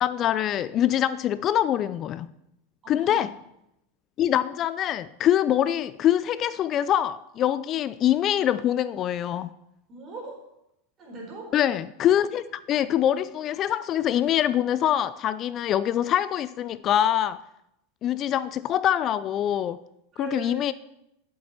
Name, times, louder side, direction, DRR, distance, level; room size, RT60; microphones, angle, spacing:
voice 1, 0.0-2.3 2.9-3.4 4.2-9.5 11.5-17.4 18.0-19.8 20.2-20.7, left 11 dB, 40° left, 0.3 m, -24 dB
voice 2, 2.8-3.3 9.9-10.4 11.0-11.5 20.1-20.6, right 3 dB, 35° right, 4.4 m, -39 dB
11.5 x 7.4 x 4.4 m
hypercardioid pair, 95°, 0 cm